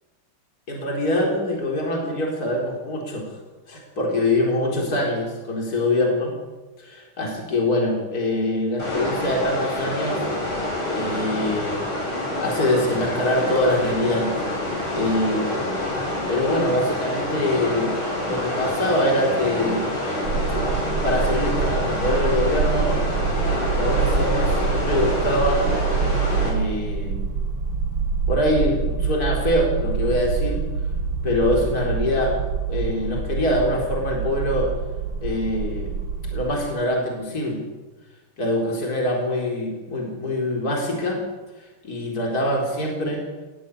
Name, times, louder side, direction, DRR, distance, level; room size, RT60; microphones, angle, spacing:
voice 1, 0.7-3.3 3.7-6.3 6.8-10.2 10.9-11.8 12.4-14.4 14.9-15.6 16.3-17.9 18.2-19.9 21.0-23.0 23.7-25.6 26.4-27.2 28.3-30.6 31.2-32.4 32.7-34.7 35.2-35.9 36.3-37.6 38.4-41.2 41.8-43.2, left 1 dB, 40° left, 0 dB, 4.6 m, -24 dB
sound 1, 8.8-26.5, left 1 dB, 65° left, 9.1 m, -27 dB
sound 2, 20.2-36.6, right 5 dB, 80° right, 2.6 m, -26 dB
19.0 x 16.0 x 8.4 m, 1.2 s
omnidirectional pair, 2.4 m